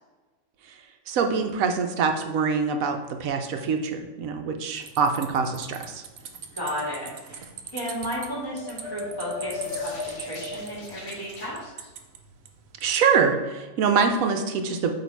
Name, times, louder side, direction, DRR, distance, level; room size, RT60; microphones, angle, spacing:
voice 1, 1.1-6.0 12.8-14.9, right 5 dB, 80° right, 5 dB, 1.1 m, -24 dB
sound 1, 4.8-12.9, right 6 dB, 60° right, 0.7 m, -43 dB
voice 2, 6.5-7.4 7.7-11.9, equal, 15° left, -7 dB, 1.8 m, -34 dB
sound 2, 8.2-11.5, left 4 dB, 50° left, 1.4 m, -36 dB
8.3 x 2.9 x 4.6 m, 1.2 s
omnidirectional pair, 1.4 m